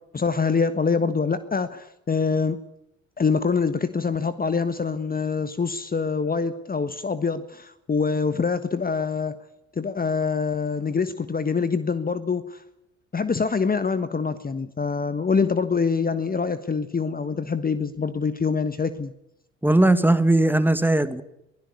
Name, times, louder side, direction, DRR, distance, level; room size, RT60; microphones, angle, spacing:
voice 1, 0.1-2.6 3.2-9.4 9.7-12.6 13.1-19.1, left 5 dB, 25° left, 13 dB, 1.4 m, -25 dB
voice 2, 19.6-21.2, right 1 dB, 5° right, 12 dB, 2.0 m, -19 dB
23.5 x 16.5 x 9.7 m, 0.82 s
figure-of-eight pair, 50°, 38 cm